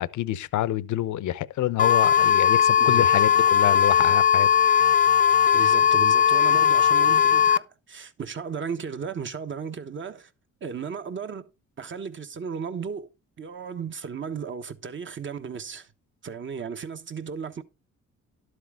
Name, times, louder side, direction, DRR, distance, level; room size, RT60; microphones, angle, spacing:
voice 1, 0.0-4.5, left 13 dB, 75° left, 0.8 m, -27 dB
sound 1, 1.8-7.6, left 8 dB, 30° left, 0.6 m, -19 dB
voice 2, 2.8-3.1 5.5-10.3 10.6-11.5 11.8-13.1 13.4-15.9 16.2-17.6, right 6 dB, 40° right, 1.3 m, -35 dB
12.0 x 8.0 x 3.7 m
cardioid pair, 90°, 30 cm